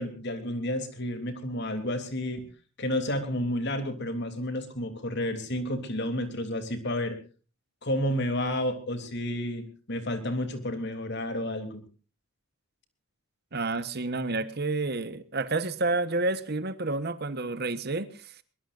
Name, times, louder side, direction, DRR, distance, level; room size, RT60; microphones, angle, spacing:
voice 1, 0.0-2.4 2.8-7.2 7.8-11.8, left 1 dB, 55° left, 8 dB, 3.2 m, -31 dB
voice 2, 13.5-18.3, right 3 dB, 50° right, 13 dB, 1.2 m, -29 dB
22.5 x 21.0 x 2.6 m, 0.36 s
head